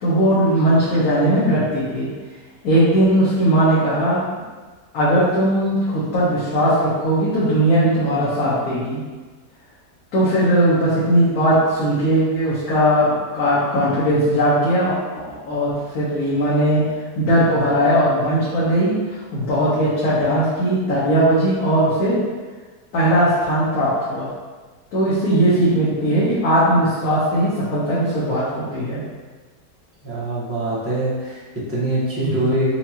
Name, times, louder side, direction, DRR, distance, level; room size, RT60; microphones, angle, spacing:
voice 1, 0.0-2.1 2.6-4.2 4.9-9.0 10.1-16.8 17.1-22.2 22.9-24.3 24.9-29.0 32.2-32.5, right 1 dB, 65° left, -10 dB, 1.3 m, -18 dB
voice 2, 30.0-32.8, right 1 dB, 10° right, -9 dB, 0.8 m, -23 dB
4.4 x 2.5 x 2.8 m, 1.3 s
omnidirectional pair, 1.8 m